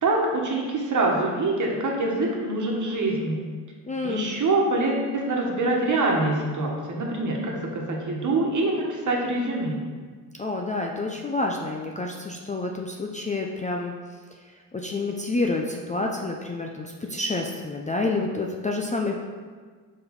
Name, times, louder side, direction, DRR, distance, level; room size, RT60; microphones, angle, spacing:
voice 1, 0.0-3.5 4.0-9.8, right 2 dB, 45° right, -1 dB, 1.4 m, -25 dB
voice 2, 3.8-4.3 10.4-13.9 14.4-19.2, left 2 dB, 20° left, 1 dB, 0.5 m, -28 dB
5.2 x 4.4 x 4.2 m, 1.5 s
supercardioid pair, 75°, 43 cm